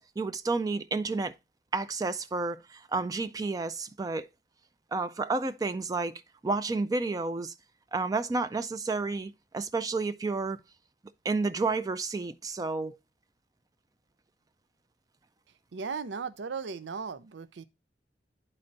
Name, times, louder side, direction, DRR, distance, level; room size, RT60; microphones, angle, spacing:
voice 1, 0.0-1.3 1.7-4.3 4.9-6.1 6.4-7.5 7.9-10.6 11.2-13.0, right 3 dB, 20° right, 0.3 m, -31 dB
voice 2, 15.7-17.6, right 5 dB, 90° right, 0.5 m, -36 dB
12.0 x 4.3 x 2.5 m
head